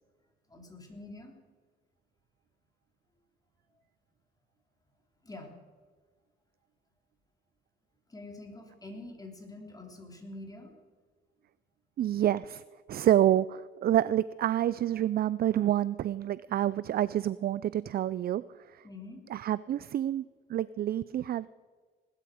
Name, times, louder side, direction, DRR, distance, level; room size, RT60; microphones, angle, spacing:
voice 1, 0.5-1.4 5.2-5.5 8.1-10.8 16.5-16.6 18.8-19.2, left 2 dB, 20° left, 2 dB, 3.4 m, -46 dB
voice 2, 12.0-12.6 12.9-18.8 19.3-20.2 20.5-21.5, right 11 dB, 50° right, 18 dB, 0.4 m, -28 dB
19.0 x 12.5 x 5.0 m, 1.5 s
cardioid pair, 90°, 20 cm